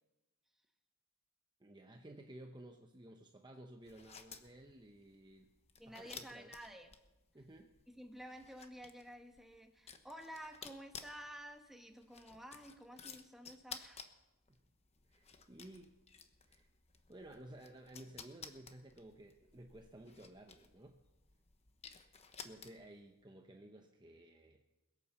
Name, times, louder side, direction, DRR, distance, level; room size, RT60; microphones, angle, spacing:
voice 1, 1.6-5.5 5.9-6.6 7.3-7.7 14.5-14.6 15.1-16.0 16.4-16.7 17.1-21.0 21.9-22.1 22.4-24.6, right 1 dB, 20° right, 4 dB, 0.8 m, -55 dB
sound 1, 3.8-23.0, left 6 dB, 30° left, 1.0 m, -55 dB
voice 2, 5.8-6.9 7.9-14.1, equal, ahead, 4 dB, 1.3 m, -52 dB
21.5 x 8.7 x 6.9 m, 1.0 s
head